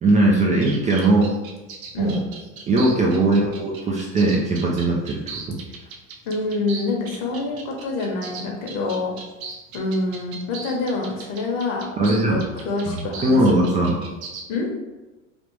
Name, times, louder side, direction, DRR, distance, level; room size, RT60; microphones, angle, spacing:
voice 1, 0.0-1.3 2.0-2.2 2.7-5.6 12.0-12.4 12.9-14.0, right 2 dB, 20° right, -3 dB, 0.4 m, -19 dB
sound 1, 0.6-14.4, right 4 dB, 90° right, 0.7 m, -38 dB
voice 2, 6.2-9.1 9.7-11.9 12.3-13.6 14.5-14.7, left 3 dB, 50° left, 0 dB, 1.1 m, -26 dB
3.4 x 2.4 x 3.1 m, 1.1 s
hypercardioid pair, 100°, 40 cm